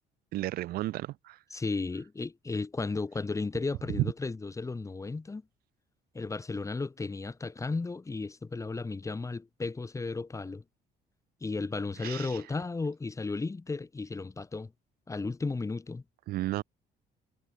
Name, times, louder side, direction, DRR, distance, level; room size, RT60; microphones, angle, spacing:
voice 1, 0.3-1.4 4.0-4.1 12.0-12.4 16.3-16.6, right 16 dB, 65° right, 0.4 m, -32 dB
voice 2, 1.5-5.4 6.1-10.6 11.4-14.7 15.1-16.0, left 3 dB, 20° left, 1.6 m, -34 dB
cardioid pair, 110°, 17 cm